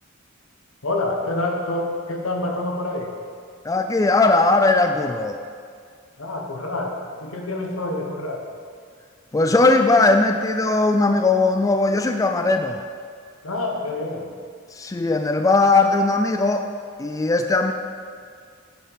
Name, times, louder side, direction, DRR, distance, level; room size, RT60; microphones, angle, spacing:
voice 1, 0.8-3.1 6.2-8.5 13.4-14.3, left 2 dB, 90° left, 1 dB, 1.4 m, -27 dB
voice 2, 3.6-5.4 9.3-12.8 14.7-16.7 17.0-17.7, left 3 dB, 15° left, 6 dB, 0.3 m, -19 dB
9.0 x 5.8 x 5.7 m, 2.1 s
head